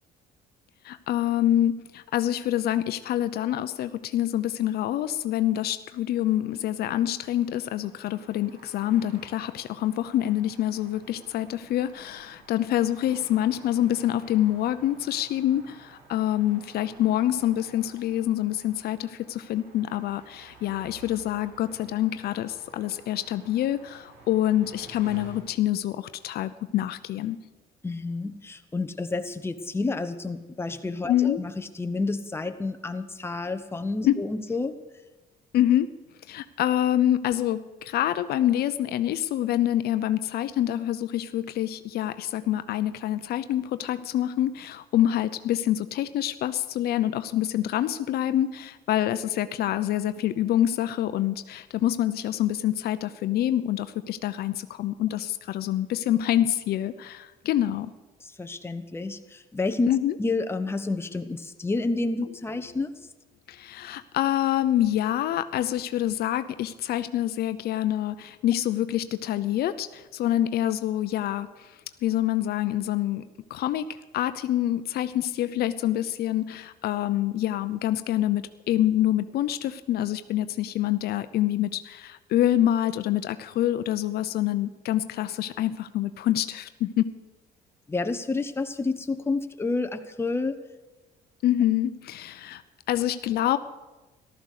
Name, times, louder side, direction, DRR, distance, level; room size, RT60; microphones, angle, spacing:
voice 1, 0.8-27.4 31.1-31.4 34.1-34.2 35.5-35.9 36.3-57.9 59.9-60.2 63.5-71.7 72.0-73.2 73.5-87.0 91.4-92.6 92.9-93.6, left 12 dB, 65° left, 12 dB, 0.6 m, -26 dB
sound 1, 6.1-25.4, right 3 dB, 80° right, 6.5 m, -52 dB
voice 2, 27.8-34.8 58.2-59.9 60.2-62.9 87.9-90.6, left 3 dB, 15° left, 8 dB, 1.0 m, -29 dB
14.0 x 13.0 x 6.6 m, 1.1 s
cardioid pair, 110°, 17 cm